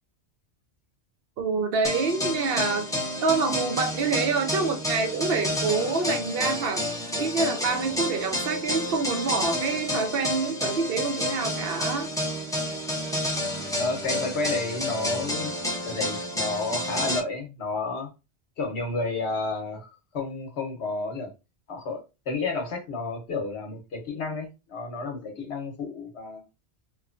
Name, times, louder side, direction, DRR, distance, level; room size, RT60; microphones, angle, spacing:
voice 1, 1.4-2.9 3.2-12.1, right 4 dB, 65° right, 0.7 m, -27 dB
sound 1, 1.8-17.2, left 1 dB, 5° left, 0.5 m, -30 dB
voice 2, 13.8-15.5 15.8-18.1 18.6-19.9 20.1-21.3 21.7-26.4, left 3 dB, 70° left, 1.1 m, -31 dB
3.0 x 2.1 x 2.4 m
omnidirectional pair, 1.2 m